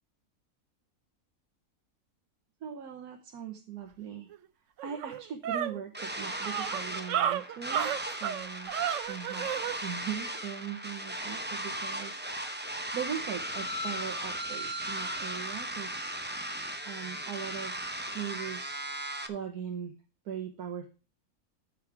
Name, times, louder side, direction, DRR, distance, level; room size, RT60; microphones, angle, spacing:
voice 1, 2.6-4.3 4.8-8.7 9.0-9.5 9.8-16.1 16.8-18.9 19.3-19.9 20.2-21.0, right 8 dB, 90° right, 3 dB, 1.5 m, -40 dB
sound 1, 4.3-4.4 4.8-9.8, right 10 dB, 65° right, 0.9 m, -32 dB
sound 2, 5.9-19.3, right 1 dB, 10° right, 0.5 m, -37 dB
14.0 x 4.8 x 4.7 m, 0.33 s
omnidirectional pair, 1.6 m